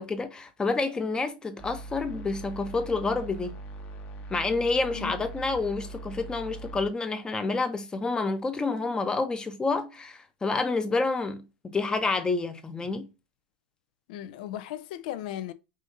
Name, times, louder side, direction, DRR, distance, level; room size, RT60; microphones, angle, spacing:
voice 1, 0.0-3.5 4.3-13.1, left 3 dB, 15° left, 0.8 m, -29 dB
sound 1, 1.6-6.9, right 2 dB, 35° left, 1.1 m, -41 dB
voice 2, 14.1-15.5, left 12 dB, 65° left, 0.5 m, -36 dB
5.1 x 2.7 x 2.5 m
hypercardioid pair, 105°, 5 cm